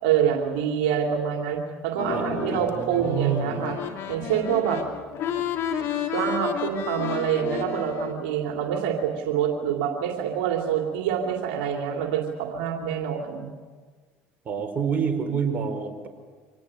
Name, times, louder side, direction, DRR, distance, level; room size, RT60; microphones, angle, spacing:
voice 1, 0.0-3.8 4.1-4.8 6.1-13.5, right 8 dB, 80° right, 2 dB, 2.5 m, -26 dB
sound 1, 2.0-8.1, left 8 dB, 60° left, 2.9 m, -31 dB
voice 2, 2.1-3.7 14.4-16.1, right 6 dB, 40° right, 4 dB, 4.8 m, -28 dB
25.5 x 19.0 x 8.8 m, 1.5 s
supercardioid pair, 80°, 5 cm